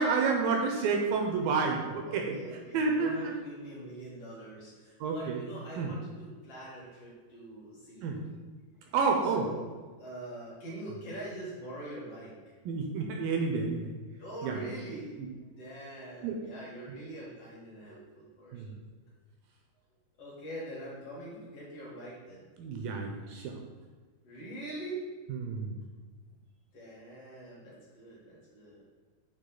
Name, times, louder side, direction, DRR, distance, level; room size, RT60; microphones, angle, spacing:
voice 1, 0.0-2.4 2.7-3.3 5.0-5.4 5.8-5.9 8.0-8.2 8.9-9.5 12.7-13.9 14.4-14.6 16.2-16.4 18.5-18.7 22.6-23.5 25.3-25.8, right 4 dB, 80° right, 1 dB, 2.1 m, -29 dB
voice 2, 2.1-8.4 9.2-9.7 10.0-12.5 14.2-18.8 20.2-22.5 24.2-25.0 26.7-28.8, right 1 dB, 50° left, -6 dB, 2.0 m, -44 dB
8.1 x 3.6 x 3.9 m, 1.4 s
omnidirectional pair, 4.6 m